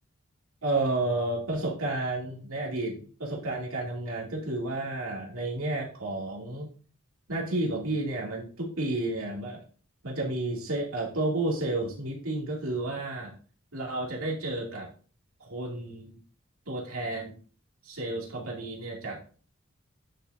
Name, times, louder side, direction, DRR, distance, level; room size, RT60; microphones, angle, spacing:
voice 1, 0.6-6.7 7.3-9.6 10.0-13.4 13.7-14.9 15.4-16.2 16.7-17.3 17.8-19.4, right 2 dB, 90° right, -1 dB, 2.4 m, -31 dB
9.8 x 6.5 x 2.6 m, 0.39 s
head